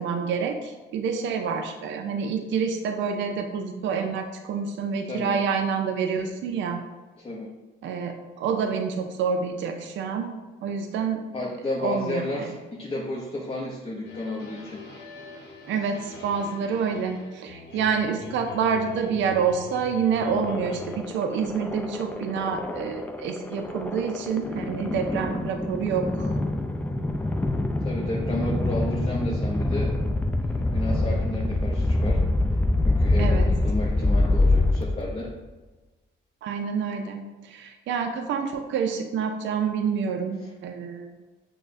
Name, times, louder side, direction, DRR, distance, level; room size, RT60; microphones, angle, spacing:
voice 1, 0.0-6.8 7.8-11.2 11.8-12.5 15.7-26.3 33.2-33.5 36.4-41.1, right 6 dB, 70° right, 5 dB, 0.4 m, -28 dB
voice 2, 7.2-7.5 11.3-14.8 17.7-17.8 27.8-32.2 32.8-35.3 40.4-40.5, left 1 dB, 30° left, -5 dB, 0.7 m, -32 dB
sound 1, 14.0-21.0, left 3 dB, 60° left, 1.0 m, -43 dB
sound 2, 20.2-35.3, left 2 dB, 10° left, 0.3 m, -25 dB
6.1 x 2.2 x 2.5 m, 1.2 s
cardioid pair, 90°, 20 cm